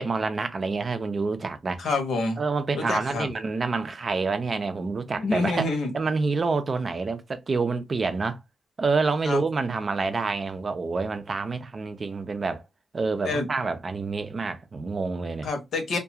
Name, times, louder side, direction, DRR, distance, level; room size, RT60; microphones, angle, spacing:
voice 1, 0.0-1.8 2.4-5.7 5.9-8.4 8.8-12.6 12.9-15.5, right 4 dB, 40° right, 0.4 m, -27 dB
voice 2, 1.8-2.4 2.7-3.3 5.2-5.9 9.2-9.4 13.2-13.5 15.4-16.0, left 3 dB, 80° left, 0.9 m, -27 dB
2.3 x 2.3 x 2.8 m
cardioid pair, 105°, 0 cm